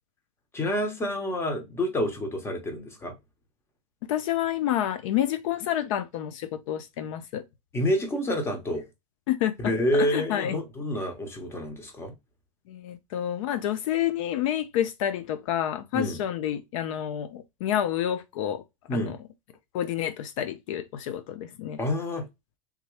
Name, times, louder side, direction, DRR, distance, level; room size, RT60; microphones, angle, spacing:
voice 1, 0.5-3.1 7.7-8.8 9.6-12.1 15.9-16.2 18.9-19.2 21.8-22.2, equal, 15° left, 1.0 m, -28 dB
voice 2, 4.1-7.4 9.3-10.6 12.7-18.6 18.9-19.2 19.7-21.8, left 11 dB, 65° left, 0.5 m, -29 dB
3.6 x 2.9 x 3.1 m
supercardioid pair, 140°, 18 cm